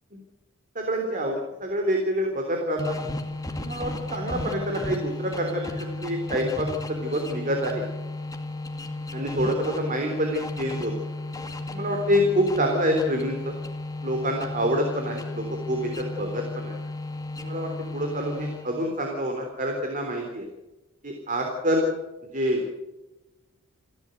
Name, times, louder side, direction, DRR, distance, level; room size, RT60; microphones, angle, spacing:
voice 1, 0.8-3.0 3.6-7.9 9.1-10.9 11.7-13.5 14.0-16.8 17.4-20.5 21.0-21.9 22.3-22.6, equal, 35° right, 3 dB, 3.6 m, -27 dB
sound 1, 2.8-18.9, left 2 dB, 15° left, 2.1 m, -34 dB
30.0 x 12.0 x 8.0 m, 1.0 s
head